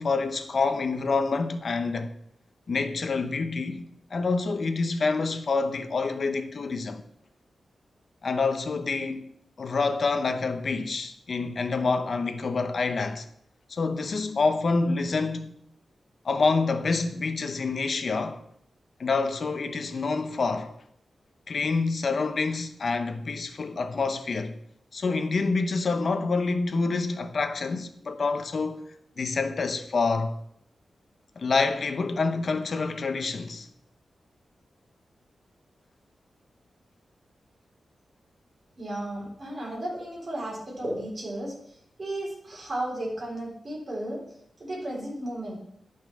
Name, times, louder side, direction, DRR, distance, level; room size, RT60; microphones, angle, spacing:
voice 1, 0.0-2.1 2.7-7.0 8.2-9.3 9.6-13.2 13.7-15.5 16.2-18.4 19.0-20.7 21.5-24.6 24.9-28.8 29.2-30.4 31.4-33.7, left 4 dB, 50° left, 0.9 m, -27 dB
voice 2, 38.8-44.2 44.6-45.6, right 1 dB, 35° right, 3.9 m, -34 dB
11.0 x 5.6 x 6.3 m
wide cardioid pair, 135°, 0 cm